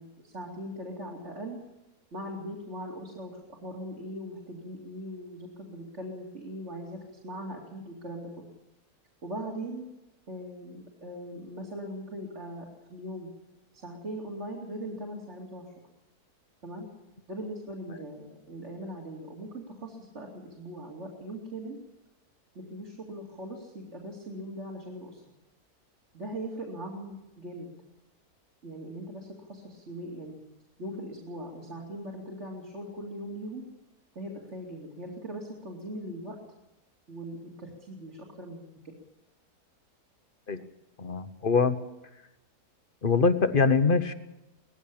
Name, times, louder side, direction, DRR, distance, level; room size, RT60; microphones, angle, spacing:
voice 1, 0.0-1.6 2.1-8.5 9.2-9.8 10.3-13.3 13.7-15.7 16.6-16.9 17.3-21.8 22.5-25.2 26.1-27.7 28.6-30.4 30.8-33.6 34.1-36.4 37.1-38.7, right 1 dB, 50° right, -2 dB, 3.0 m, -40 dB
voice 2, 41.0-41.8 43.0-44.1, left 4 dB, 40° left, 10 dB, 1.2 m, -23 dB
19.0 x 15.5 x 8.8 m, 0.97 s
omnidirectional pair, 1.6 m